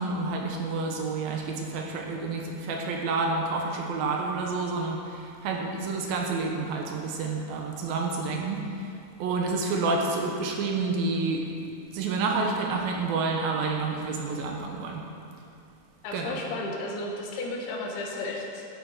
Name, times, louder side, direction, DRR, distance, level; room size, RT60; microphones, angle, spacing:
voice 1, 0.0-8.9 9.2-11.5 11.8-15.1 16.1-16.4, right 3 dB, 75° right, 1 dB, 2.6 m, -29 dB
voice 2, 16.0-18.7, left 2 dB, 85° left, 0 dB, 3.4 m, -33 dB
11.5 x 8.5 x 4.8 m, 2.5 s
omnidirectional pair, 4.5 m